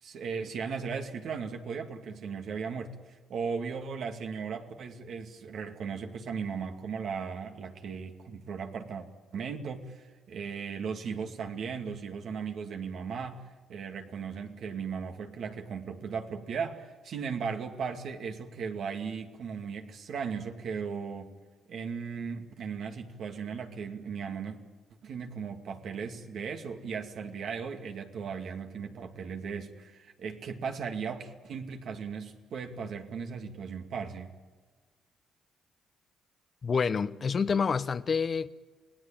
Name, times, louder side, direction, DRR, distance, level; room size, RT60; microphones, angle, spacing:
voice 1, 0.0-9.1 9.3-13.4 13.7-21.3 21.7-24.6 25.0-34.3, right 6 dB, 65° right, 2.4 m, -37 dB
voice 2, 36.6-38.5, left 5 dB, 40° left, 1.0 m, -28 dB
28.5 x 18.0 x 8.9 m
cardioid pair, 90°, 0 cm